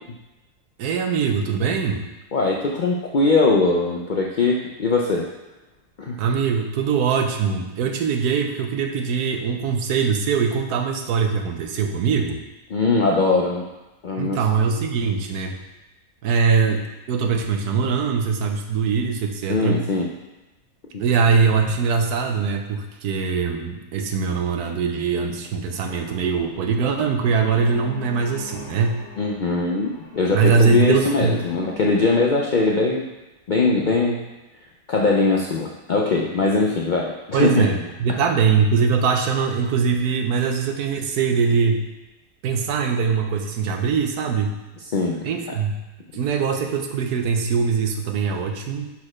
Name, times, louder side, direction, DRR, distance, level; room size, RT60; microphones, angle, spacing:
voice 1, 0.8-2.1 6.2-12.4 14.2-15.6 16.2-19.8 21.0-29.0 30.3-31.4 37.3-41.9 42.4-44.5 45.2-45.8 46.1-48.9, right 5 dB, 90° right, 4 dB, 1.3 m, -22 dB
voice 2, 2.3-5.3 6.0-6.2 12.7-13.6 14.0-14.4 19.5-20.1 20.9-21.0 29.2-33.1 33.5-34.2 34.9-37.7 44.9-45.3, left 3 dB, 75° left, -1 dB, 0.4 m, -21 dB
sound 1, 25.7-32.2, left 2 dB, 45° left, 1.3 m, -41 dB
6.4 x 4.3 x 4.9 m, 1.1 s
omnidirectional pair, 1.6 m